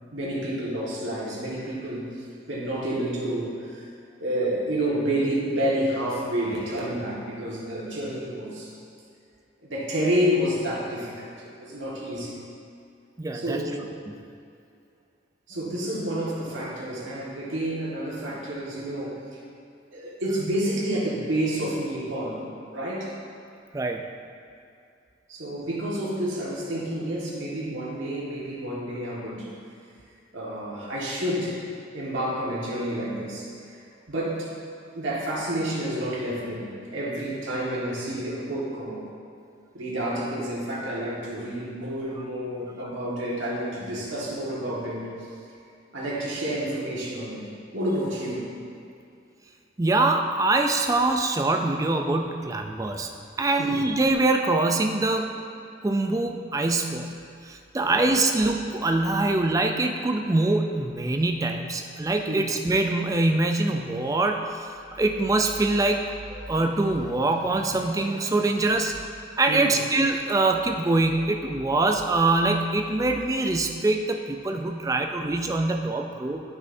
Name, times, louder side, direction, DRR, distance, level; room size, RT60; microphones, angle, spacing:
voice 1, 0.1-2.1 2.5-3.8 4.2-8.7 9.6-12.4 13.3-13.8 15.5-19.2 19.9-22.4 22.7-23.1 25.3-29.5 30.3-31.6 31.9-33.5 34.1-34.5 34.9-39.1 39.7-45.0 45.9-48.5 53.6-53.8 57.8-58.1 62.3-62.5 69.5-69.8, right 1 dB, 80° right, -6 dB, 1.6 m, -29 dB
voice 2, 13.2-13.6 14.1-14.2 23.7-24.0 49.8-53.1 53.4-55.3 55.8-57.1 57.5-66.0 66.3-68.9 69.4-76.4, right 2 dB, 15° right, 4 dB, 0.4 m, -24 dB
10.5 x 5.6 x 2.6 m, 2.5 s
head